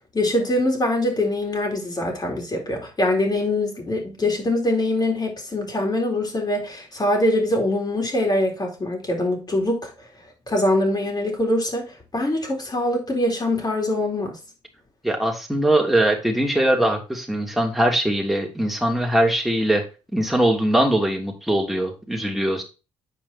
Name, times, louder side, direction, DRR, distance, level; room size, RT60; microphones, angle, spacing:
voice 1, 0.1-9.9 10.5-14.4, left 1 dB, 30° left, 4.1 m, -23 dB
voice 2, 15.0-19.8 20.1-22.6, right 1 dB, ahead, 3.1 m, -21 dB
9.4 x 5.1 x 4.3 m
supercardioid pair, 55°, 13 cm